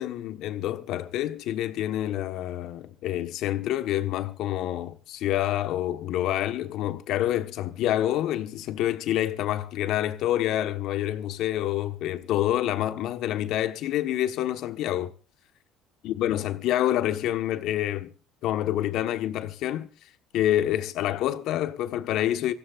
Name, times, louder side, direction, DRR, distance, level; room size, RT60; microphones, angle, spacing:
voice 1, 0.0-15.1 16.0-18.1 18.4-19.9 20.3-22.5, left 12 dB, 70° left, 1.4 m, -27 dB
25.0 x 15.5 x 2.5 m
supercardioid pair, 90°, 0 cm